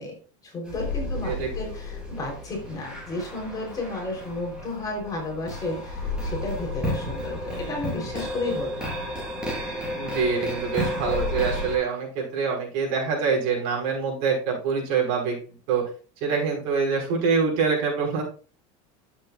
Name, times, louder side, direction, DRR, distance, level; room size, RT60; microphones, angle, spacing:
voice 1, 0.0-8.9, left 2 dB, 20° left, 0 dB, 3.8 m, -33 dB
sound 1, 0.7-11.8, left 1 dB, 5° right, 4.3 m, -32 dB
voice 2, 9.9-15.9 16.2-18.2, right 5 dB, 60° right, -1 dB, 5.5 m, -25 dB
11.5 x 8.2 x 2.5 m, 0.38 s
supercardioid pair, 150°, 16 cm